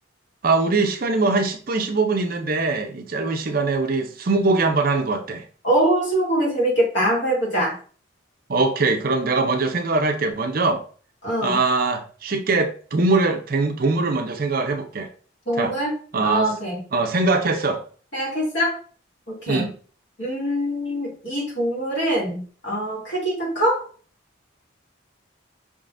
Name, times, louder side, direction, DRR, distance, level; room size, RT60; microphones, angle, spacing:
voice 1, 0.4-5.4 8.5-10.8 11.4-15.1 15.6-15.7 16.1-16.5 16.9-17.8 19.5-19.7, right 3 dB, 45° right, 5 dB, 0.5 m, -22 dB
voice 2, 5.6-7.8 11.2-11.6 15.5-15.9 16.2-16.8 18.1-18.8 19.3-19.7 20.2-23.9, right 1 dB, 60° left, -3 dB, 2.1 m, -23 dB
5.4 x 3.7 x 2.5 m, 0.41 s
head